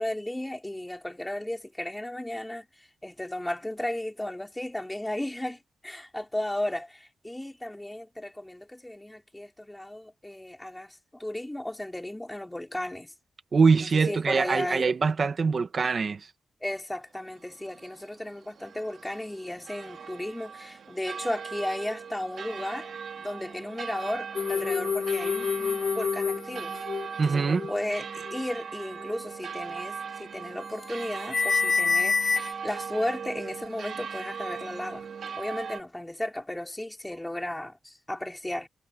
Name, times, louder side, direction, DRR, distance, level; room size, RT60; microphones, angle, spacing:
voice 1, 0.0-2.7 3.0-13.1 13.8-14.9 16.6-22.9 23.2-26.8 27.2-35.1 35.4-38.7, left 1 dB, 5° left, 4.5 m, -35 dB
voice 2, 13.5-16.3 27.2-27.6, right 5 dB, 40° right, 1.3 m, -23 dB
sound 1, 17.2-35.8, right 6 dB, 55° right, 2.2 m, -39 dB
sound 2, 24.4-27.1 27.4-27.8 28.3-28.4 29.0-29.1 30.8-31.1 31.3-32.5, left 5 dB, 35° left, 0.5 m, -27 dB
wide cardioid pair, 175°, 0 cm